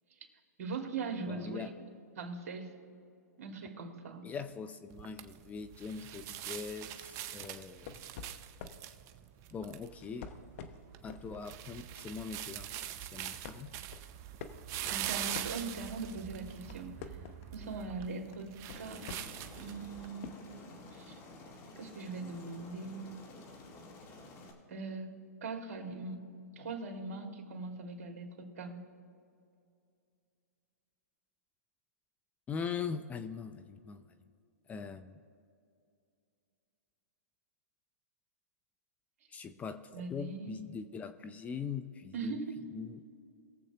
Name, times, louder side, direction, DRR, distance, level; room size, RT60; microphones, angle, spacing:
voice 1, 0.6-1.7 2.2-2.7 3.4-4.3 14.9-17.1 17.5-19.0 19.6-20.5 20.9-21.2 21.8-23.2 24.7-26.2 26.6-28.8 39.9-40.6 42.1-42.6, right 4 dB, 60° right, 2 dB, 2.3 m, -41 dB
voice 2, 1.3-1.7 4.2-8.0 9.5-10.3 11.0-12.7 13.1-13.7 32.5-34.0 34.7-35.2 39.3-39.8 40.1-42.4 42.7-43.0, left 6 dB, 15° left, 10 dB, 0.5 m, -41 dB
sound 1, 4.9-20.1, right 12 dB, 30° right, 0.6 m, -43 dB
sound 2, 7.2-8.9 9.9-11.3 11.7-12.0 12.4-13.0 13.4-16.0 16.4-17.6 18.3-19.5 20.2-20.3, left 6 dB, 50° left, 0.9 m, -48 dB
Aircraft, 18.7-24.5, left 2 dB, 35° left, 2.0 m, -52 dB
21.5 x 7.7 x 2.9 m, 2.4 s
hypercardioid pair, 130°, 9 cm